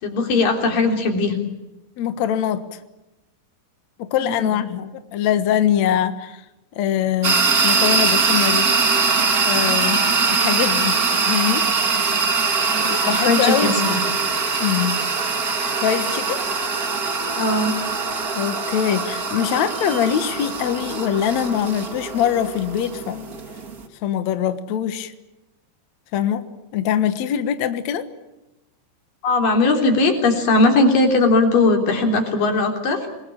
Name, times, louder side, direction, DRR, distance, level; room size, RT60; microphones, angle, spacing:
voice 1, 0.0-1.4 4.2-4.6 12.7-14.0 17.3-17.7 29.2-33.1, left 3 dB, 50° left, 4 dB, 5.0 m, -19 dB
voice 2, 2.0-2.8 4.0-6.4 6.7-8.7 9.4-11.0 11.2-11.6 12.8-13.7 14.6-15.0 15.8-16.4 18.3-23.3 24.0-25.1 26.1-26.4 26.7-28.1, left 9 dB, 80° left, 10 dB, 1.6 m, -23 dB
sound 1, 7.2-23.8, right 4 dB, 80° right, 0.8 m, -22 dB
28.0 x 21.0 x 8.7 m, 1.0 s
omnidirectional pair, 5.4 m